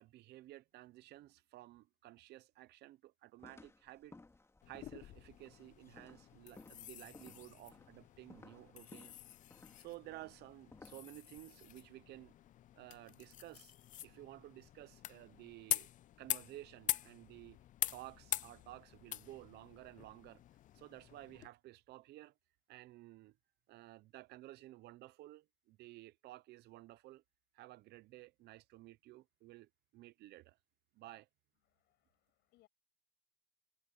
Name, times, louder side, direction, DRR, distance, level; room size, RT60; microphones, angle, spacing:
voice 1, 0.0-4.1 4.7-9.2 9.8-12.3 12.8-13.7 14.0-15.9 16.2-17.6 17.9-20.4 20.7-22.3 22.7-23.4 23.7-27.2 27.5-30.6 30.9-31.3, right 17 dB, 75° right, 0.8 m, -54 dB
sound 1, 3.4-11.4, left 3 dB, 15° left, 2.5 m, -60 dB
sound 2, 4.6-21.5, left 13 dB, 50° left, 0.4 m, -45 dB
voice 2, 31.7-32.7, left 17 dB, 85° left, 7.9 m, -73 dB
cardioid pair, 110°, 17 cm